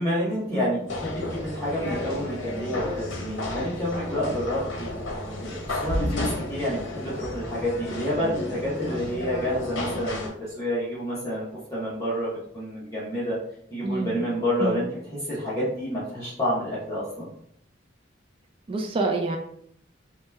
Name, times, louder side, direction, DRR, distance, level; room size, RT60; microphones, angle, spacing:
voice 1, 0.0-4.9 5.3-11.5 11.7-13.4 13.7-17.3, equal, 20° left, -10 dB, 0.8 m, -29 dB
sound 1, 0.9-10.3, left 1 dB, 65° left, 0.7 m, -32 dB
voice 2, 13.8-14.2 14.6-14.8 18.7-19.4, right 3 dB, 30° right, 3 dB, 0.3 m, -27 dB
2.8 x 2.2 x 3.3 m, 0.68 s
head